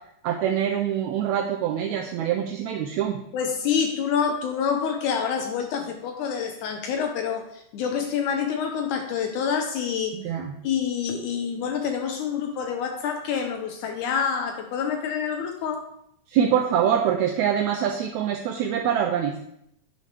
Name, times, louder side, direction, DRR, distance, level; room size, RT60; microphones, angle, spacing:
voice 1, 0.2-3.2 10.1-10.5 16.3-19.4, right 9 dB, 80° right, 3 dB, 1.7 m, -24 dB
voice 2, 3.3-10.2 10.6-15.8, left 7 dB, 75° left, 5 dB, 2.0 m, -27 dB
9.1 x 3.2 x 5.1 m, 0.73 s
omnidirectional pair, 3.8 m